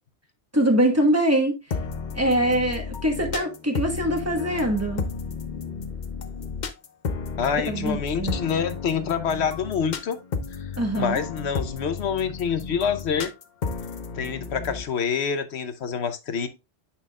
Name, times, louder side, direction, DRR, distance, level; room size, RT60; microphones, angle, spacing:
voice 1, 0.5-1.5 2.1-5.0 7.7-8.4 10.8-11.2, right 1 dB, 15° right, 1.3 m, -23 dB
sound 1, 1.7-14.8, left 5 dB, 45° left, 0.8 m, -33 dB
voice 2, 7.4-10.2 10.6-10.7 11.0-13.3 14.1-16.5, left 6 dB, 70° left, 1.1 m, -26 dB
8.6 x 5.6 x 2.3 m
omnidirectional pair, 1.2 m